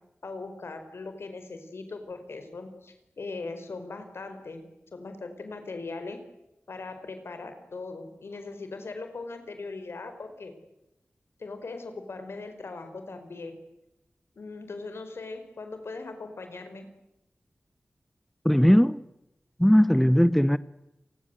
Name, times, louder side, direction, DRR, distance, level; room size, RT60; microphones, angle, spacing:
voice 1, 0.2-4.6 4.9-6.2 6.7-10.6 11.4-13.6 14.4-16.9, left 3 dB, 80° left, 4.6 m, -39 dB
voice 2, 18.4-19.0 19.6-20.6, equal, 5° left, 1.0 m, -19 dB
30.0 x 20.5 x 8.0 m
cardioid pair, 45°, 4 cm